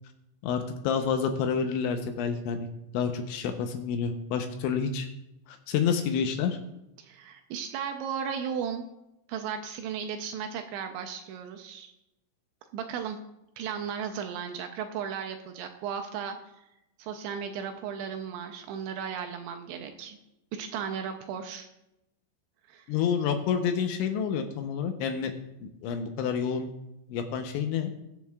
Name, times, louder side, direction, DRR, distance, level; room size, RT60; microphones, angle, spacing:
voice 1, 0.4-2.7 2.9-5.1 5.5-6.6 22.9-25.3 25.6-26.7 27.1-27.9, left 7 dB, 80° left, 5 dB, 2.9 m, -29 dB
voice 2, 7.0-8.9 9.3-11.9 12.7-13.2 13.6-16.7 17.0-20.2 20.5-21.7 22.7-22.9, right 7 dB, 80° right, 5 dB, 2.8 m, -35 dB
21.5 x 7.5 x 2.3 m, 0.88 s
omnidirectional pair, 5.7 m